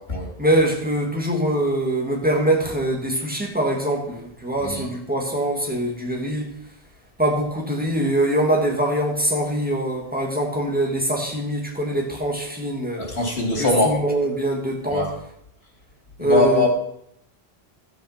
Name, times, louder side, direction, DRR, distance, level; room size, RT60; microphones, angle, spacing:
voice 1, 0.4-6.5 7.2-13.1 13.6-15.1 16.2-16.7, right 1 dB, 10° right, 2.1 m, -23 dB
voice 2, 13.0-13.9 14.9-15.1 16.2-16.7, left 2 dB, 90° left, 3.4 m, -21 dB
14.0 x 5.9 x 5.8 m
omnidirectional pair, 1.0 m